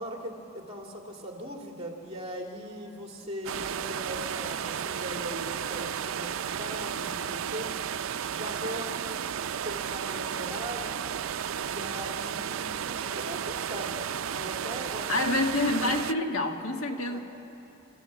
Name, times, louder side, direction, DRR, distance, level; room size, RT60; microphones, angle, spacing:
voice 1, 0.0-7.7 8.3-9.2 9.6-11.0 11.7-13.9 14.3-15.2 16.9-17.2, equal, 30° right, 1 dB, 2.6 m, -40 dB
sound 1, 3.4-16.1, right 8 dB, 75° right, 0.4 m, -33 dB
voice 2, 15.1-17.2, left 2 dB, 85° left, 4 dB, 1.6 m, -27 dB
29.5 x 14.0 x 7.1 m, 2.8 s
head